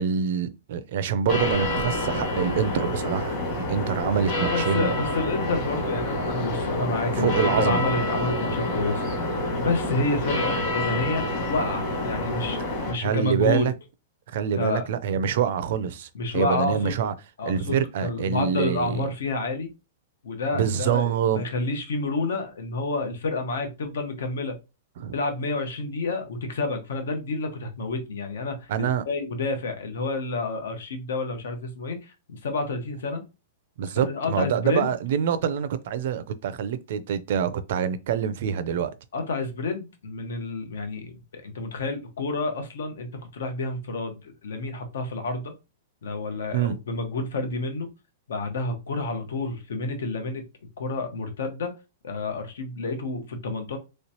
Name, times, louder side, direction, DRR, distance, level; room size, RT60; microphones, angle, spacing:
voice 1, 0.0-4.9 7.1-7.8 13.0-13.7 14.3-16.1 16.3-17.1 17.4-19.0 20.5-21.4 25.0-25.1 28.7-29.0 33.8-38.9 46.5-46.8, right 8 dB, 50° right, 0.4 m, -25 dB
sound 1, 1.3-12.9, left 1 dB, 30° left, 1.4 m, -27 dB
voice 2, 4.5-9.0 9.6-12.6 12.9-13.7 14.5-14.8 16.1-17.0 17.4-19.7 20.2-24.5 25.1-33.2 33.9-34.9 39.1-45.5 46.0-47.9 48.3-50.4 50.8-51.7 52.0-53.8, left 3 dB, 80° left, 1.0 m, -29 dB
3.2 x 3.0 x 2.8 m
supercardioid pair, 175°, 0 cm